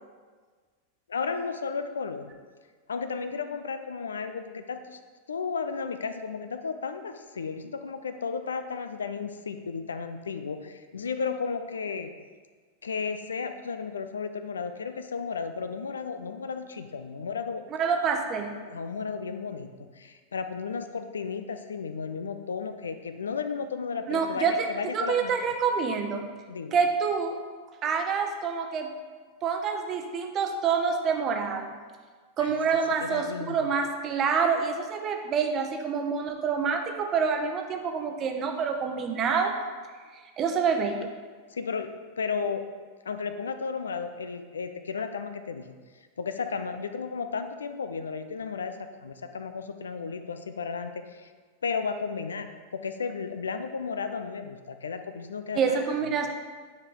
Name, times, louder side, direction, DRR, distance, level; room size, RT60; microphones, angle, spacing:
voice 1, 1.1-2.3 2.9-5.0 5.3-12.1 12.8-17.6 18.7-25.3 26.5-26.8 32.4-32.5 33.0-33.7 41.5-41.9 42.2-42.6 43.1-45.7 46.2-51.3 51.6-56.0, left 5 dB, 70° left, 9 dB, 0.4 m, -34 dB
voice 2, 17.8-18.5 24.1-24.7 24.9-26.3 26.7-27.4 27.8-28.9 29.4-31.7 32.4-39.5 40.4-41.1 55.5-56.3, right 6 dB, 30° right, 4 dB, 0.9 m, -27 dB
9.4 x 4.9 x 3.8 m, 1.5 s
figure-of-eight pair, 90°, 0 cm